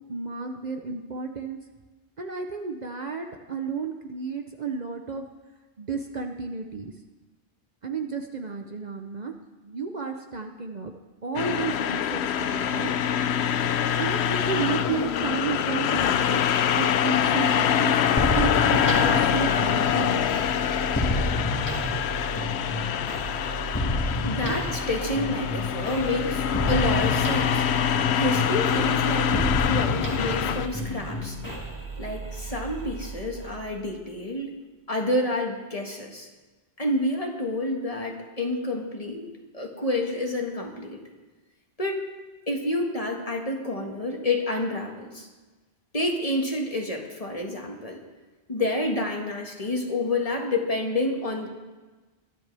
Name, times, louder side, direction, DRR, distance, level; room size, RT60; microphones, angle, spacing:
voice 1, 0.0-1.6 2.2-5.3 5.8-6.9 7.8-9.3 9.6-10.9 11.2-12.9 14.0-16.4 16.7-20.2 24.4-24.7, right 5 dB, 45° right, 4 dB, 0.8 m, -32 dB
sound 1, 11.4-30.7, left 8 dB, 85° left, 0.9 m, -25 dB
sound 2, 18.2-33.8, equal, 15° left, 2.0 m, -31 dB
voice 2, 24.2-27.6 28.1-31.4 32.0-34.6 34.9-36.3 36.8-39.3 39.5-41.0 41.8-42.0 42.5-45.3 45.9-48.0 48.5-51.5, left 1 dB, 35° left, 1 dB, 1.7 m, -29 dB
23.0 x 10.5 x 3.4 m, 1.2 s
omnidirectional pair, 1.1 m